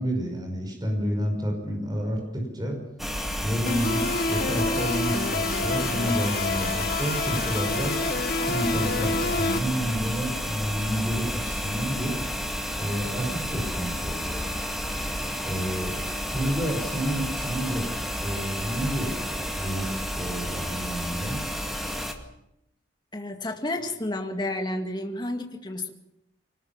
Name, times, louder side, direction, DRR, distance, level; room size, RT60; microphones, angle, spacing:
voice 1, 0.0-2.8 3.4-4.0 4.3-7.9 8.5-12.2 12.8-14.4 15.4-16.0 16.3-17.9 18.2-21.4, equal, 20° right, 2 dB, 5.6 m, -29 dB
sound 1, 3.0-22.1, equal, ahead, 2.1 m, -31 dB
sound 2, 3.7-9.6, left 3 dB, 50° left, 1.4 m, -28 dB
voice 2, 23.1-25.9, left 1 dB, 25° left, 4 dB, 2.2 m, -31 dB
24.0 x 19.0 x 7.4 m, 0.82 s
head